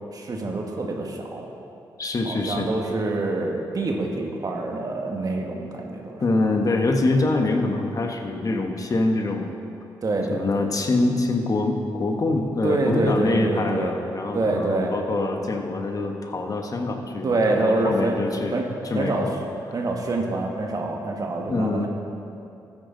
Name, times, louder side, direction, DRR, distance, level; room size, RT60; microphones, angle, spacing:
voice 1, 0.1-1.5 2.2-6.4 10.0-10.7 12.6-13.9 14.3-14.9 17.2-18.1 18.5-19.3 19.7-21.9, right 2 dB, 45° right, 1 dB, 1.6 m, -26 dB
voice 2, 2.0-2.7 6.2-9.6 10.3-17.3 17.6-18.6 18.9-19.4 21.5-21.9, left 2 dB, 45° left, 3 dB, 1.3 m, -24 dB
13.5 x 9.2 x 3.9 m, 2.7 s
cardioid pair, 60°, 9 cm